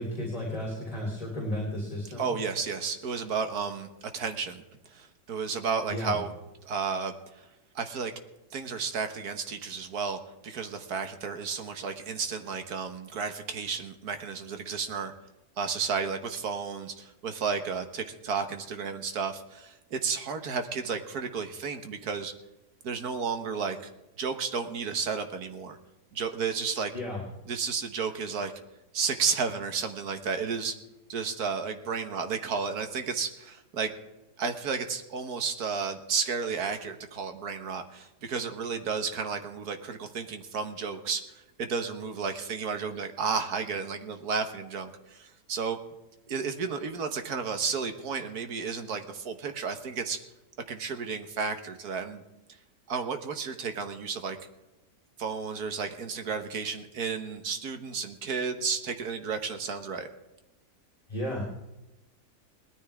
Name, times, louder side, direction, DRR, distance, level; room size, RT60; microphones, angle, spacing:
voice 1, 0.0-2.3 5.9-6.2 26.9-27.2 61.1-61.4, left 1 dB, 20° left, -3 dB, 3.3 m, -33 dB
voice 2, 2.2-3.9 4.1-4.6 4.9-6.3 6.6-7.4 7.7-8.1 8.5-15.1 15.6-22.3 22.8-23.9 24.2-25.8 26.1-26.9 27.5-28.5 28.9-30.7 31.1-33.9 34.4-45.8 46.3-50.2 50.7-52.2 52.9-54.4 55.2-60.1, right 5 dB, 70° right, 7 dB, 1.7 m, -32 dB
19.5 x 13.5 x 3.5 m, 0.98 s
omnidirectional pair, 1.7 m